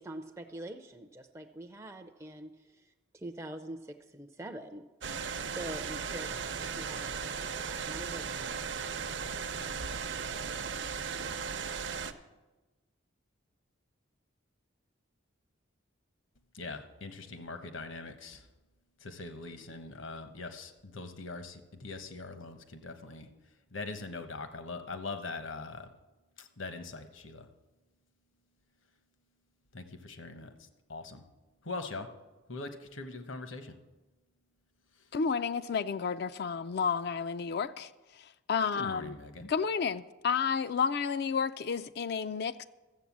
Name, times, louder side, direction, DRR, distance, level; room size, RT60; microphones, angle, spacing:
voice 1, 0.0-4.9 5.5-8.9, right 1 dB, 15° right, 0.4 m, -45 dB
sound 1, 5.0-12.1, right 6 dB, 55° right, 0.7 m, -36 dB
voice 2, 16.5-18.5 19.0-23.3 23.7-25.9 26.4-27.5 29.7-31.2 31.6-32.1 32.5-33.8 35.0-35.1 38.7-39.5, left 3 dB, 70° left, 1.1 m, -42 dB
voice 3, 35.1-39.1 39.5-42.6, left 6 dB, 50° left, 0.3 m, -31 dB
13.5 x 7.7 x 7.3 m
head